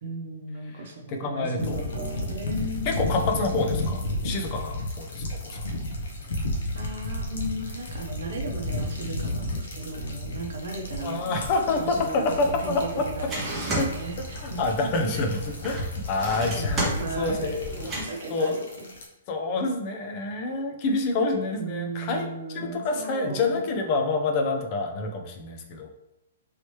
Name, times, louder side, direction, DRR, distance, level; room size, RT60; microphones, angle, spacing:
voice 1, 0.0-3.0 6.7-11.4 11.8-14.7 16.5-18.9 21.5-23.7, right 2 dB, 60° right, 1 dB, 0.7 m, -36 dB
voice 2, 1.1-1.9 2.9-5.6 11.0-13.0 13.8-13.9 14.4-17.7 18.3-18.5 19.3-22.3 22.5-25.9, left 3 dB, 30° left, 4 dB, 0.4 m, -27 dB
sound 1, 1.6-19.1, left 1 dB, 75° left, 0.8 m, -33 dB
sound 2, 11.3-18.0, right 1 dB, 10° right, 0.8 m, -34 dB
3.2 x 2.9 x 3.1 m, 0.93 s
hypercardioid pair, 165°, 0 cm